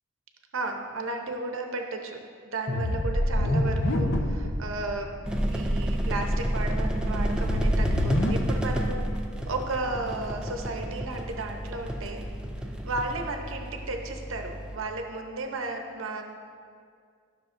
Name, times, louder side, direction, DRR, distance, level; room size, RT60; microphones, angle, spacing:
voice 1, 0.5-2.2 2.4-5.2 5.5-9.1 9.5-12.2 12.8-16.2, right 2 dB, 70° right, 3 dB, 0.8 m, -34 dB
sound 1, 2.7-4.6 4.9-5.0 5.3-5.8 6.2-8.3, left 1 dB, 55° left, 0.7 m, -26 dB
sound 2, 5.2-14.8, equal, 5° right, 0.3 m, -30 dB
13.0 x 6.3 x 2.6 m, 2.2 s
head